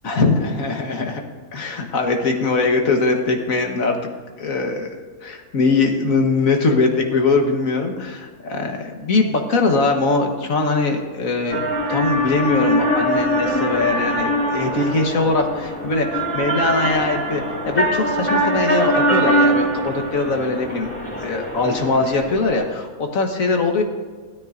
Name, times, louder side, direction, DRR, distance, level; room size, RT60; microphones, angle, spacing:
voice 1, 0.0-1.2 1.5-4.0 4.4-4.9 5.2-11.6 11.9-20.9 21.2-23.8, left 3 dB, 65° left, 3 dB, 1.7 m, -21 dB
sound 1, 11.5-22.6, equal, 10° left, 2.5 m, -22 dB
16.5 x 12.5 x 2.6 m, 1.5 s
omnidirectional pair, 1.6 m